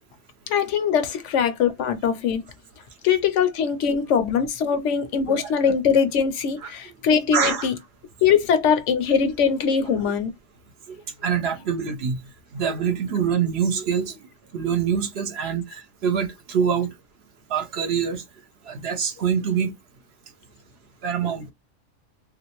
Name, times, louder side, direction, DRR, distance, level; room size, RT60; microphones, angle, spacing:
voice 1, 0.5-2.4 3.0-7.7 8.2-10.3 21.2-21.3, left 7 dB, 80° left, 0.9 m, -22 dB
voice 2, 6.6-7.7 10.9-12.2 12.5-14.2 14.5-16.9 17.5-18.2 18.7-19.7 21.0-21.5, right 7 dB, 65° right, 0.8 m, -25 dB
3.1 x 2.5 x 2.9 m
omnidirectional pair, 1.3 m